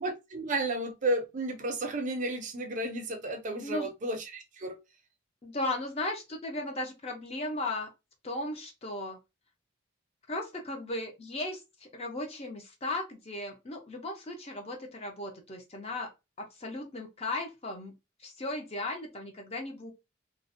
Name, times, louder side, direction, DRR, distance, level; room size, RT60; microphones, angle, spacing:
voice 1, 0.0-4.8, right 1 dB, 40° right, 0.4 m, -32 dB
voice 2, 5.4-7.9 8.2-9.2 10.3-16.1 16.5-17.9 18.2-19.9, left 2 dB, 30° left, 0.5 m, -36 dB
2.5 x 2.0 x 2.5 m
head